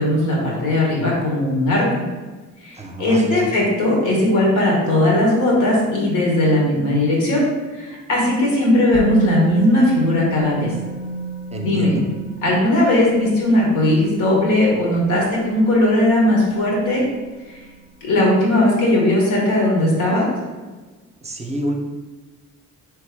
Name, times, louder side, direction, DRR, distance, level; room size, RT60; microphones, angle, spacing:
voice 1, 0.0-2.0 2.6-7.5 7.7-10.7 11.6-12.0 12.4-17.0 18.0-20.3, left 1 dB, 90° left, -3 dB, 1.4 m, -18 dB
voice 2, 2.8-3.5 11.5-12.0 21.2-21.7, right 1 dB, 20° right, 1 dB, 0.5 m, -28 dB
Musical instrument, 8.9-16.8 17.1-17.3, right 3 dB, 55° left, 0.7 m, -30 dB
3.6 x 3.3 x 3.4 m, 1.3 s
cardioid pair, 90°, 30 cm